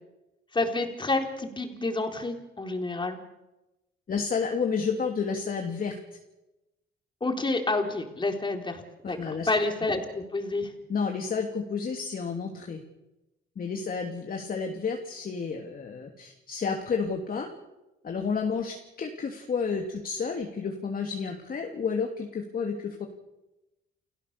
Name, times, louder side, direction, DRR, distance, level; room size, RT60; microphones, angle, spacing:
voice 1, 0.5-3.2 7.2-10.7, left 2 dB, 25° left, 4 dB, 4.0 m, -29 dB
voice 2, 4.1-6.0 9.0-9.5 10.9-12.8 13.6-17.5 18.0-23.1, left 5 dB, 45° left, 3 dB, 2.8 m, -31 dB
30.0 x 16.0 x 6.8 m, 0.98 s
cardioid pair, 90°, 20 cm